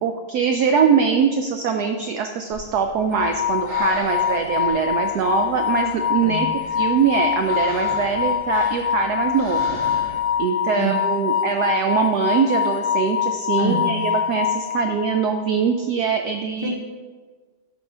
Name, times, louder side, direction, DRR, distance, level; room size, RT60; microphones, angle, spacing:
voice 1, 0.0-6.5 6.7-9.6 10.0-10.1 10.4-16.7, right 6 dB, 80° right, 5 dB, 0.9 m, -22 dB
Breathing, 2.5-10.4, right 1 dB, 40° right, 2.8 m, -38 dB
sound 1, 3.1-15.3, left 8 dB, 90° left, 0.7 m, -24 dB
voice 2, 6.2-6.6 10.8-11.2 13.6-14.1 16.6-16.7, equal, 35° left, -3 dB, 1.0 m, -27 dB
11.0 x 6.3 x 3.3 m, 1.4 s
omnidirectional pair, 2.2 m